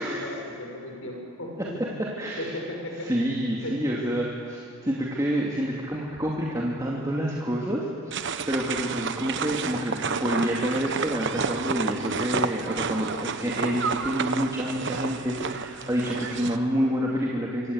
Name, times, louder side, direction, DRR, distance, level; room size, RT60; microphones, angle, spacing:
voice 1, 0.0-1.9 2.4-3.1 3.6-3.8, left 1 dB, 70° left, 1 dB, 6.9 m, -36 dB
voice 2, 2.0-2.5 3.1-17.7, equal, 15° right, -4 dB, 2.7 m, -28 dB
sound 1, 8.1-16.6, right 5 dB, 55° right, 1.1 m, -30 dB
26.0 x 25.5 x 8.4 m, 2.5 s
head